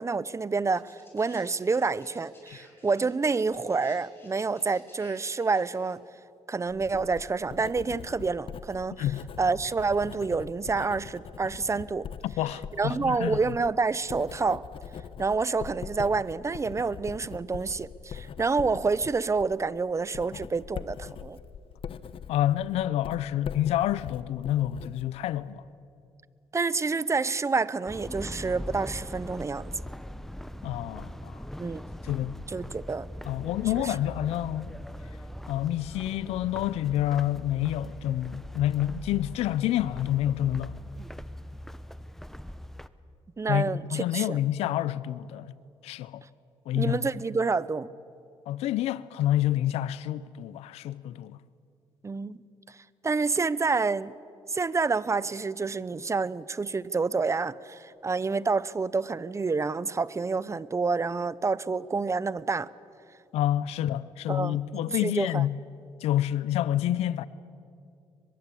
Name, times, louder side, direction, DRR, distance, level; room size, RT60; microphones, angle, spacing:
voice 1, 0.0-6.0 6.5-9.1 9.4-12.1 12.8-14.6 15.2-21.4 26.5-29.7 31.6-31.8 32.5-33.1 33.8-33.9 43.4-44.4 46.7-47.9 52.0-52.4 52.7-52.8 53.0-54.2 54.5-62.7 64.3-64.6 64.9-65.4, right 4 dB, 30° right, 0.7 m, -28 dB
sound 1, 0.7-5.9 7.0-7.1, left 2 dB, 20° left, 6.9 m, -57 dB
Writing, 6.7-25.5, left 8 dB, 60° left, 1.0 m, -42 dB
voice 2, 12.2-13.4 22.3-25.6 30.6-31.4 32.0-32.3 33.2-34.7 35.5-40.7 43.5-45.5 45.8-46.2 46.7-47.0 48.5-51.4 63.3-65.6 66.0-67.3, left 12 dB, 85° left, 0.7 m, -28 dB
sound 2, 27.9-42.9, equal, 5° left, 1.0 m, -41 dB
23.0 x 21.5 x 8.5 m
supercardioid pair, 70°, 10 cm